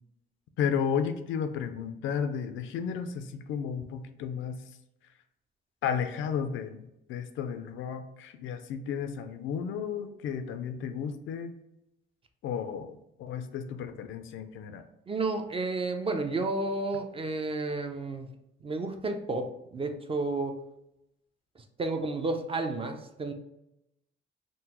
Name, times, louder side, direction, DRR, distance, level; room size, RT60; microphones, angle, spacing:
voice 1, 0.6-4.6 5.8-11.5 12.4-14.8, left 7 dB, 80° left, 8 dB, 0.4 m, -33 dB
voice 2, 15.1-18.3 18.6-20.6 21.8-23.3, right 3 dB, 30° right, 6 dB, 0.4 m, -31 dB
3.7 x 2.0 x 2.9 m, 0.86 s
cardioid pair, 90°, 20 cm